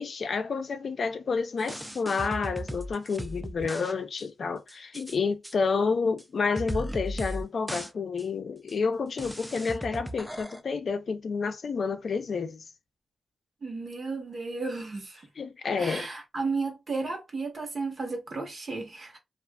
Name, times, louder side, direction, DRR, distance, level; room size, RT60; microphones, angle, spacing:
voice 1, 0.0-12.6 15.4-16.1, left 5 dB, 65° left, 0.4 m, -29 dB
sound 1, 1.6-3.9 4.2-4.3 4.7-5.2 5.4-5.5 6.2-6.3 6.6-7.4 7.7-7.9 8.2-8.3 8.7-8.8 9.2-10.6, equal, 5° right, 0.3 m, -36 dB
voice 2, 13.6-15.2 15.8-19.2, right 3 dB, 50° right, 1.0 m, -33 dB
2.4 x 2.4 x 2.2 m
wide cardioid pair, 90°, 0 cm